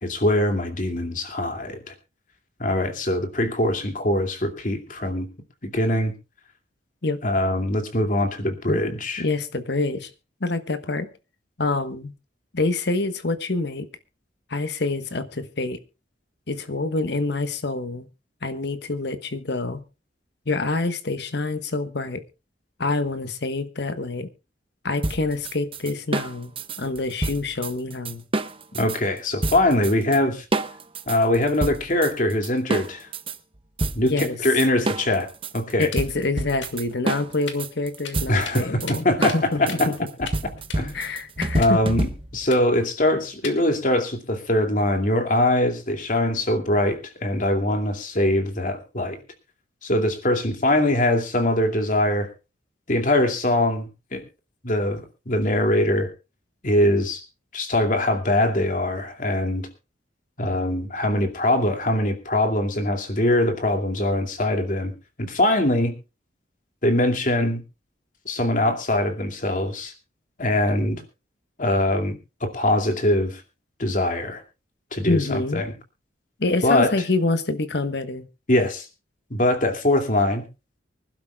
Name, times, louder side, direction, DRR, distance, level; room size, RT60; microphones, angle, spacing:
voice 1, 0.0-1.9 2.6-5.3 5.6-6.1 7.2-9.2 28.7-30.5 31.1-33.1 33.9-35.3 35.5-35.9 38.3-39.9 40.8-40.9 41.5-42.1 42.3-49.2 49.8-52.3 52.9-54.2 54.6-56.1 56.6-57.2 57.5-59.7 60.4-64.9 65.2-66.0 66.8-67.6 68.3-69.9 70.4-71.0 71.6-73.4 73.8-74.4 74.9-75.7 76.6-76.9 78.5-78.9 79.3-80.4, left 1 dB, 45° left, 2.5 m, -22 dB
voice 2, 9.2-10.1 10.4-11.1 11.6-12.1 12.5-13.9 14.5-15.8 16.5-18.1 18.4-19.8 20.5-22.2 22.8-24.3 24.8-28.2 34.0-34.4 35.8-39.9 40.9-41.8 75.1-75.6 76.4-78.3, left 2 dB, 60° left, 1.3 m, -26 dB
sound 1, 25.0-29.0 29.4-30.2 30.5-33.4 33.8-42.5, right 2 dB, 30° right, 0.9 m, -28 dB
sound 2, 35.3-36.2 36.5-37.2 37.5-37.6 37.8-40.3 40.6-41.2 41.6-41.7 42.1-42.2 42.4-43.6 43.9-44.1, left 7 dB, 80° left, 2.2 m, -38 dB
25.0 x 12.0 x 2.4 m
head